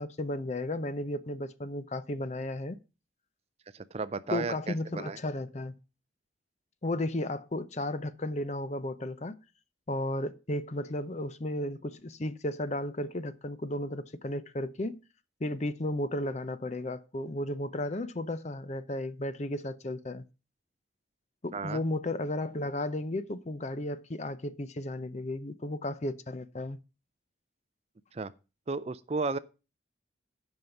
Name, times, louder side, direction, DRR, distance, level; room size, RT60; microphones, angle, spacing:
voice 1, 0.0-2.8 4.3-5.8 6.8-9.4 9.9-15.0 15.4-20.2 21.4-26.8, left 1 dB, 35° left, 0.6 m, -34 dB
voice 2, 3.7-5.2 21.5-21.8 28.1-28.3 28.7-29.4, right 4 dB, 35° right, 0.4 m, -34 dB
11.0 x 5.5 x 5.8 m
head